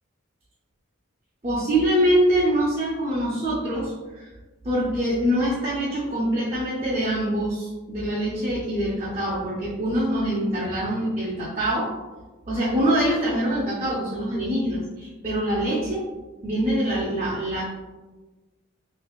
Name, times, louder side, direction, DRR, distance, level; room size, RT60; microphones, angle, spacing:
voice 1, 1.4-4.3 4.6-11.9 12.5-16.0 16.4-17.6, right 1 dB, 30° right, -7 dB, 0.5 m, -24 dB
4.3 x 2.7 x 2.2 m, 1.2 s
head